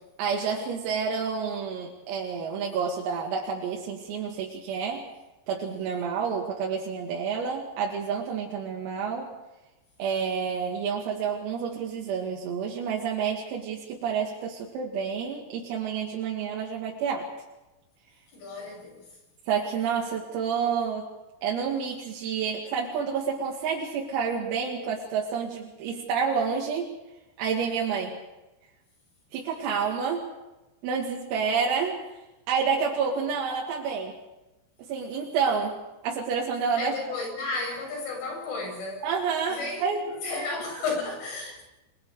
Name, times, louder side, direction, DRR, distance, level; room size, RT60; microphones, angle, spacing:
voice 1, 0.2-5.1 5.5-9.3 10.0-17.3 19.5-21.1 21.4-26.9 27.4-28.2 29.3-30.3 30.8-32.0 32.5-34.1 34.9-36.9 39.0-40.1, right 6 dB, 85° right, -2 dB, 5.1 m, -29 dB
voice 2, 18.3-19.1 36.8-39.1 39.5-41.6, left 3 dB, 70° left, 0 dB, 10.5 m, -33 dB
30.0 x 22.5 x 5.0 m, 1.0 s
omnidirectional pair, 5.9 m